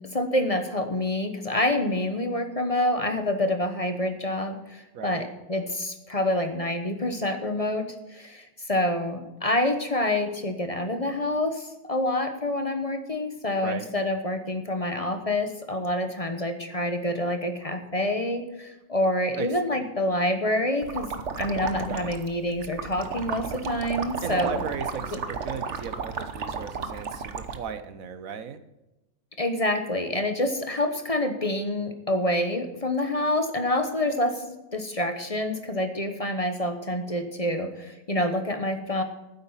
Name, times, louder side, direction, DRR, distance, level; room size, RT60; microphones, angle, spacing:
voice 1, 0.1-21.1 21.4-24.6 29.4-39.0, left 1 dB, 30° left, 6 dB, 1.1 m, -27 dB
voice 2, 4.9-5.3 13.6-13.9 19.4-19.8 21.9-22.2 24.2-28.6, right 7 dB, 85° right, 11 dB, 1.4 m, -36 dB
sound 1, 20.8-27.6, right 5 dB, 60° right, 1.3 m, -33 dB
12.5 x 9.5 x 5.7 m, 0.98 s
omnidirectional pair, 1.4 m